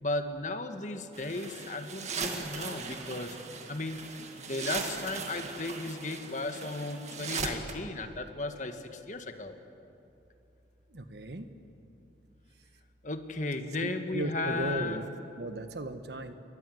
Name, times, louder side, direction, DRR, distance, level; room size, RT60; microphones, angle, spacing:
voice 1, 0.0-3.4 3.7-4.0 4.4-9.6 13.0-15.0, left 2 dB, 40° left, 7 dB, 1.7 m, -35 dB
sound 1, 1.1-7.8, right 4 dB, 35° right, 2.1 m, -38 dB
voice 2, 10.9-11.5 13.8-15.0 15.4-16.3, right 1 dB, 60° right, 9 dB, 1.4 m, -36 dB
29.0 x 22.5 x 7.9 m, 2.8 s
head